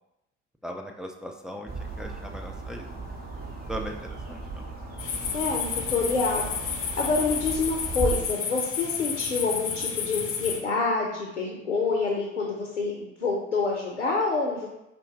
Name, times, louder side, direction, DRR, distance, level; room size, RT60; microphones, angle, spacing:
voice 1, 0.6-2.9 3.7-4.7, equal, ahead, 1 dB, 0.4 m, -38 dB
sound 1, 1.7-8.2, right 3 dB, 25° right, 1.0 m, -36 dB
sound 2, 5.0-10.6, left 6 dB, 40° left, 0.6 m, -31 dB
voice 2, 5.3-14.7, left 4 dB, 85° left, -1 dB, 0.6 m, -27 dB
4.2 x 2.6 x 3.4 m, 0.91 s
figure-of-eight pair, 55°, 35 cm